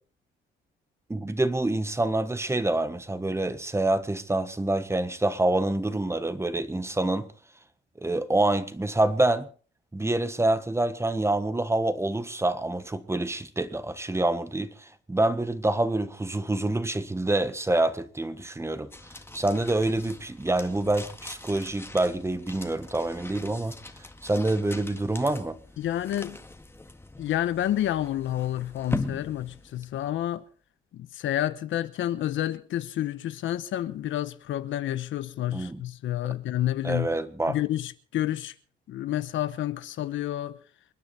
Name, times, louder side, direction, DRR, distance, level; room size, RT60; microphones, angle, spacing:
voice 1, 1.1-7.3 8.0-9.5 9.9-18.9 19.3-23.8 24.2-25.6 35.5-35.8 36.8-37.6, right 2 dB, 15° right, 1.4 m, -26 dB
sound 1, 18.9-30.3, left 2 dB, 10° left, 1.9 m, -41 dB
voice 2, 25.8-26.4 27.2-30.4 30.9-37.1 37.5-38.5 38.9-40.6, left 12 dB, 75° left, 1.0 m, -29 dB
28.0 x 9.7 x 4.2 m
cardioid pair, 90°, 20 cm